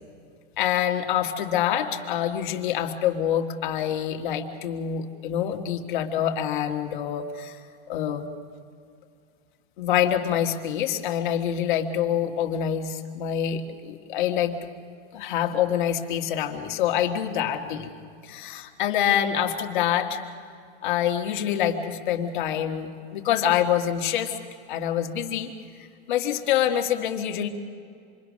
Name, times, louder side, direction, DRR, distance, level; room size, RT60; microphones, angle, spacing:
voice 1, 0.6-7.6 7.9-8.3 9.8-14.5 15.1-17.9 18.2-20.2 20.8-24.4 24.7-25.5 26.1-27.5, left 10 dB, 50° left, 4 dB, 1.8 m, -26 dB
27.5 x 22.5 x 6.4 m, 2.3 s
supercardioid pair, 175°, 31 cm